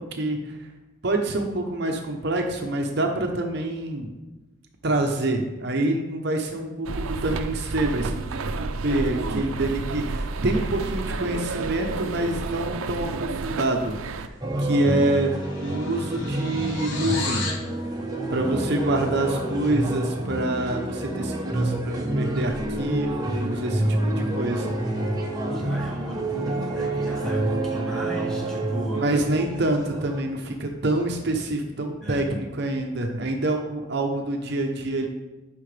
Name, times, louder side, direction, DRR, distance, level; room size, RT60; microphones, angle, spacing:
voice 1, 0.1-0.6 1.0-4.1 4.8-14.3 14.6-15.3 15.6-17.5 18.3-24.7 29.0-35.1, right 2 dB, 50° right, 3 dB, 0.7 m, -26 dB
sound 1, 6.9-14.3, right 3 dB, 85° right, 0.5 m, -31 dB
sound 2, 14.4-30.2, right 1 dB, 20° right, 0.9 m, -28 dB
sound 3, 14.5-14.7 15.0-17.7, left 3 dB, 70° left, 1.3 m, -34 dB
voice 2, 17.9-18.9 25.4-29.0 32.0-32.3, right 1 dB, ahead, -3 dB, 1.4 m, -36 dB
10.5 x 5.8 x 3.3 m, 1.1 s
head